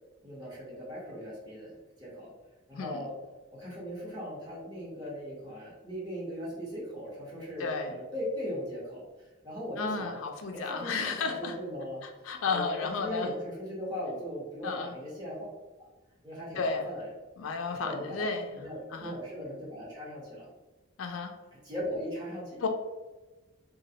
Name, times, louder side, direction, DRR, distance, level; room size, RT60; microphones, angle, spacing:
voice 1, 0.2-2.3 2.7-3.1 3.5-10.2 10.5-12.0 12.4-15.4 16.2-17.1 17.7-18.3 18.5-20.5 21.6-22.6, equal, 20° right, -7 dB, 1.0 m, -38 dB
voice 2, 7.6-7.9 9.8-11.6 12.2-13.3 14.6-14.9 16.6-16.9 17.4-18.6 18.9-19.2 21.0-21.3 22.6-22.7, left 4 dB, 80° left, 4 dB, 0.4 m, -33 dB
3.0 x 2.2 x 2.7 m, 1.2 s
head